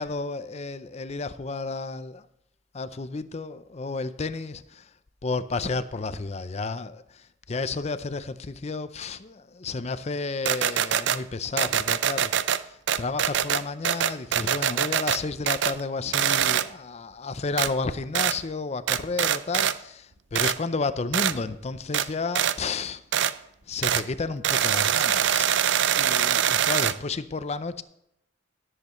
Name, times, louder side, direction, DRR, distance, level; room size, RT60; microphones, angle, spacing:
voice 1, 0.0-2.3 2.7-4.9 5.2-23.0 23.3-23.4 23.7-25.5 26.0-27.8, left 3 dB, 35° left, 0.5 m, -32 dB
sound 1, 10.4-11.2 11.6-12.6 12.9-15.2 15.5-15.8 16.1-16.7 17.6-17.7 18.1-18.4 18.9-19.7 20.3-20.6 21.1-21.3 21.9-22.1 22.3-22.6 23.1-23.3 23.8-24.0 24.4-26.9, right 9 dB, 65° right, 0.4 m, -23 dB
17.0 x 7.9 x 3.1 m
head